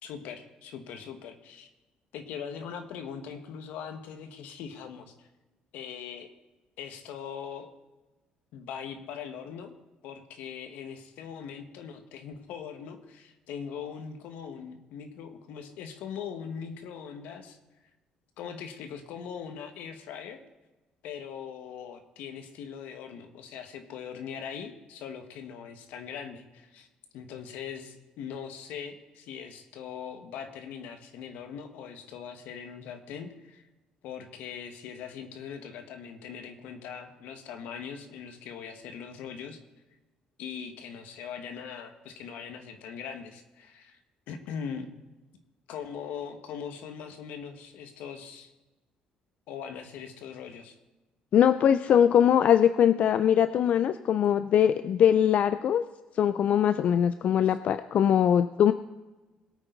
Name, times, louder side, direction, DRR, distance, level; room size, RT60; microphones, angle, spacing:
voice 1, 0.0-1.7 2.1-5.3 5.7-6.3 6.8-7.7 8.5-9.7 10.0-17.6 18.4-20.4 21.0-26.9 27.1-33.6 34.0-39.6 40.4-44.0 44.3-44.9 45.7-48.5 49.5-50.8, left 7 dB, 85° left, 7 dB, 1.7 m, -41 dB
voice 2, 51.3-55.8 56.1-58.7, left 9 dB, 55° left, 12 dB, 0.5 m, -22 dB
21.0 x 8.9 x 4.0 m, 1.1 s
cardioid pair, 110°, 3 cm